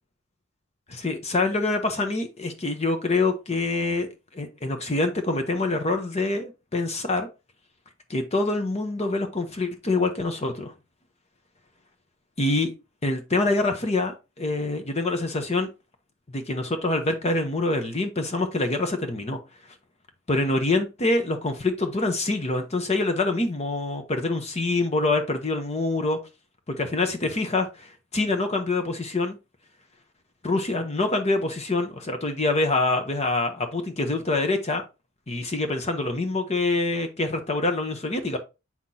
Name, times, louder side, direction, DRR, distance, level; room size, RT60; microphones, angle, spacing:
voice 1, 0.9-4.1 4.3-7.3 8.1-10.7 12.4-12.7 13.0-15.7 16.3-19.4 20.3-26.2 26.8-29.4 30.4-34.8 35.3-38.4, left 2 dB, 35° left, 6 dB, 0.9 m, -25 dB
7.4 x 5.8 x 2.8 m, 0.27 s
head